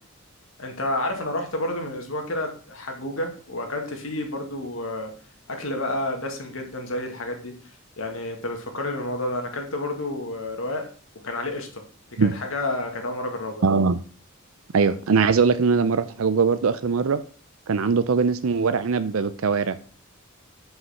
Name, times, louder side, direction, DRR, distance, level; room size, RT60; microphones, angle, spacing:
voice 1, 0.6-5.1 5.5-7.6 8.0-10.9 11.2-11.8 12.1-13.7, left 1 dB, 75° left, 3 dB, 2.1 m, -30 dB
voice 2, 13.6-14.0 14.7-17.2 17.7-19.8, right 5 dB, 85° right, 12 dB, 0.5 m, -21 dB
7.9 x 5.7 x 5.7 m, 0.41 s
head